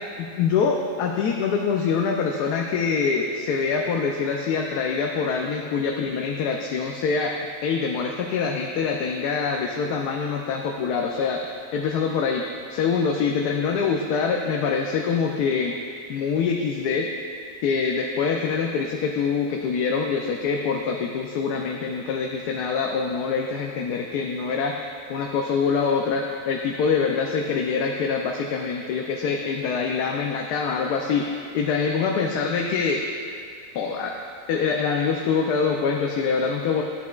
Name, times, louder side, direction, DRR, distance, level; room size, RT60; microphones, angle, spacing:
voice 1, 0.2-7.3 7.6-11.4 11.7-12.4 12.7-15.8 16.1-17.1 17.6-24.7 25.1-33.0 33.7-34.2 34.5-36.8, left 5 dB, 85° left, 1 dB, 1.2 m, -25 dB
13.0 x 8.3 x 2.3 m, 2.3 s
omnidirectional pair, 1.7 m